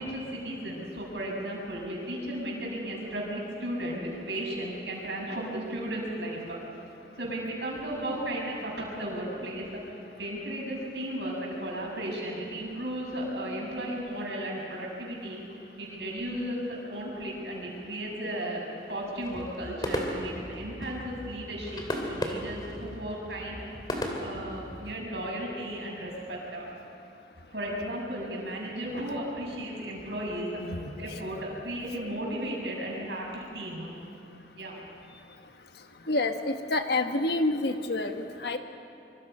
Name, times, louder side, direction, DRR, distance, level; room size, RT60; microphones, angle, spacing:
voice 1, 0.0-6.6 7.2-9.8 10.2-15.4 15.8-18.6 18.9-23.6 24.2-26.7 27.5-30.6 31.0-33.9 34.5-34.8, right 1 dB, 75° right, -2 dB, 6.9 m, -35 dB
sound 1, 19.2-25.0, left 1 dB, 25° left, 2.5 m, -36 dB
voice 2, 30.6-30.9 36.1-38.6, left 2 dB, 65° left, 6 dB, 1.4 m, -28 dB
25.0 x 24.5 x 5.6 m, 2.6 s
head